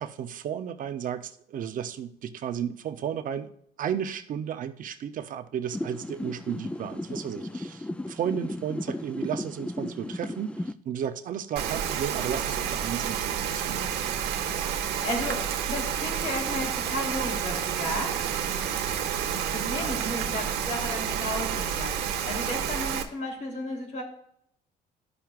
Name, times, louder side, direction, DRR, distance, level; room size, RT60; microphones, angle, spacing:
voice 1, 0.0-3.5 3.8-13.8, right 9 dB, 50° right, 0.7 m, -33 dB
sound 1, 5.7-10.7, left 1 dB, 5° left, 0.4 m, -35 dB
Rain, 11.6-23.0, right 8 dB, 80° right, 1.1 m, -30 dB
voice 2, 14.7-18.2 19.3-24.0, left 1 dB, 45° left, 3.1 m, -34 dB
13.5 x 5.8 x 2.4 m
cardioid pair, 110°, 17 cm